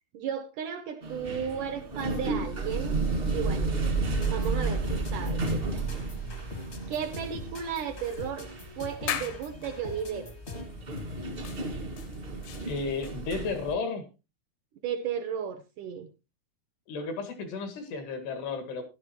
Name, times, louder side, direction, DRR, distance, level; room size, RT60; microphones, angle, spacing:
voice 1, 0.1-3.0 3.3-5.8 6.9-8.5 8.8-10.3 14.8-16.1, right 8 dB, 80° right, 6 dB, 1.8 m, -34 dB
sound 1, 1.0-13.7, right 3 dB, 40° right, 0.8 m, -32 dB
sound 2, 4.0-10.9, left 2 dB, 50° left, 0.7 m, -43 dB
voice 2, 4.1-4.5 12.7-14.1 16.9-18.8, left 4 dB, 85° left, 7 dB, 4.0 m, -33 dB
sound 3, 8.0-9.7 10.4-10.6 11.0-13.1, left 9 dB, 70° left, 1.8 m, -39 dB
13.5 x 11.5 x 3.0 m, 0.28 s
omnidirectional pair, 4.6 m